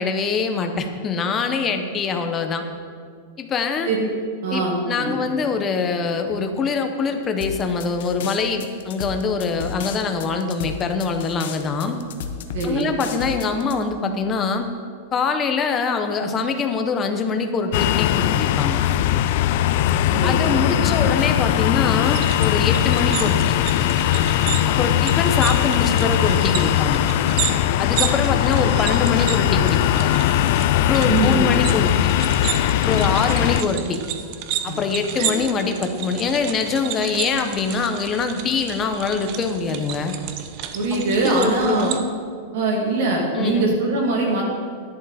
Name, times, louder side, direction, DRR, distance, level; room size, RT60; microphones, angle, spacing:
voice 1, 0.0-2.6 3.4-3.9 4.5-12.0 12.6-14.7 15.1-18.8 20.2-23.6 24.7-27.0 27.8-30.1 30.7-32.1 32.8-34.0 34.6-40.2 40.9-41.9 43.3-43.7, left 5 dB, 15° left, 6 dB, 0.7 m, -24 dB
voice 2, 4.4-5.1 12.5-12.9 20.1-21.0 31.0-31.4 34.7-34.8 35.2-35.3 40.7-42.0 42.5-44.4, right 3 dB, 50° right, -1 dB, 2.4 m, -22 dB
sound 1, 7.4-13.8, left 7 dB, 55° left, 0.8 m, -33 dB
sound 2, 17.7-33.6, left 12 dB, 40° left, 0.3 m, -20 dB
sound 3, 22.0-42.0, right 10 dB, 30° right, 0.5 m, -32 dB
11.0 x 10.5 x 4.1 m, 2.1 s
supercardioid pair, 180°, 0 cm